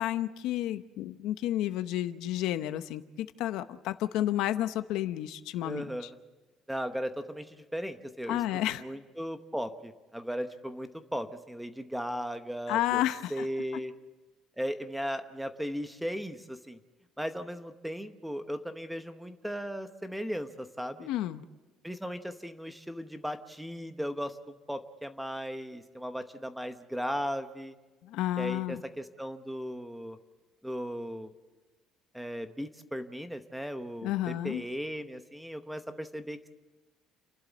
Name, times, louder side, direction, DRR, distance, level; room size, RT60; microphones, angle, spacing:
voice 1, 0.0-6.1 8.3-8.8 12.7-13.5 21.0-21.4 28.1-28.8 34.0-34.6, left 13 dB, 70° left, 11 dB, 0.8 m, -31 dB
voice 2, 5.6-6.2 6.7-8.4 8.8-13.9 14.6-16.8 17.2-21.1 21.8-27.8 28.4-30.2 30.6-31.3 32.1-34.1 34.4-36.4, equal, ahead, 9 dB, 0.9 m, -37 dB
30.0 x 12.0 x 7.3 m, 1.2 s
cardioid pair, 170°, 0 cm